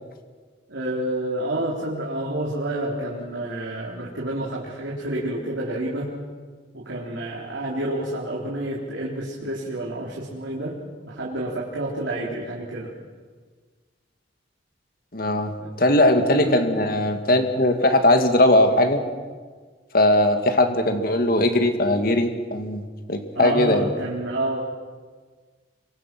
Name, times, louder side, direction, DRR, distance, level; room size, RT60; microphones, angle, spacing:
voice 1, 0.7-6.1 6.7-10.8 11.1-12.9 15.6-15.7 16.3-16.7 23.3-24.6, right 1 dB, 90° right, -4 dB, 3.9 m, -29 dB
voice 2, 15.1-15.5 15.8-19.0 19.9-22.8 23.1-23.9, left 1 dB, 50° left, 6 dB, 2.2 m, -19 dB
26.5 x 23.5 x 6.2 m, 1.5 s
head